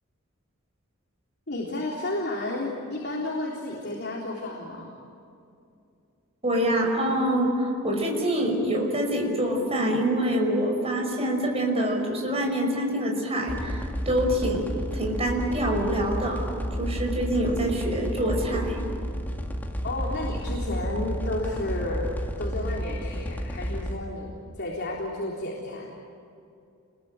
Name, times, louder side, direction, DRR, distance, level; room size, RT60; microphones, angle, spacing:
voice 1, 1.5-4.9 19.8-22.1 22.4-25.9, left 1 dB, 50° left, -2 dB, 3.7 m, -32 dB
voice 2, 6.4-16.5 16.8-18.8, right 1 dB, 30° right, 1 dB, 5.7 m, -26 dB
sound 1, 13.5-23.9, equal, 10° left, 2.1 m, -31 dB
29.0 x 22.0 x 9.1 m, 2.5 s
head